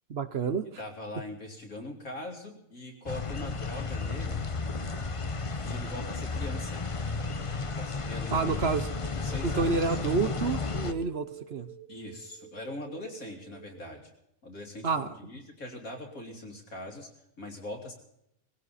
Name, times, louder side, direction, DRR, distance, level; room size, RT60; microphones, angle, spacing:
voice 1, 0.1-0.6 8.3-8.9 9.4-11.7 14.8-15.1, right 4 dB, 55° right, 11 dB, 1.0 m, -29 dB
voice 2, 0.8-4.4 5.5-6.8 7.6-8.6 9.0-10.0 11.9-14.1 14.4-17.1 17.4-17.9, left 1 dB, 75° left, 1 dB, 3.3 m, -42 dB
sound 1, 3.1-10.9, left 4 dB, 30° left, 0.6 m, -33 dB
sound 2, 6.6-14.0, right 9 dB, 80° right, 2.1 m, -52 dB
20.5 x 16.0 x 4.2 m, 0.78 s
omnidirectional pair, 1.5 m